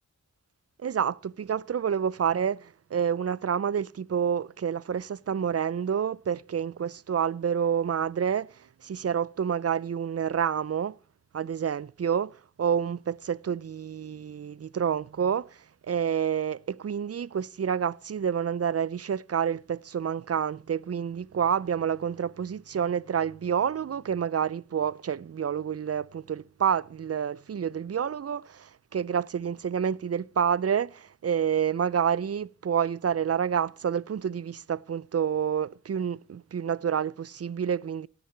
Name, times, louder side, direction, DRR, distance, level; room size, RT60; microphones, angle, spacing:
voice 1, 0.8-8.5 8.8-11.0 11.3-15.5 15.9-38.1, right 8 dB, 50° right, 0.5 m, -28 dB
17.0 x 6.7 x 4.4 m
cardioid pair, 50°, 31 cm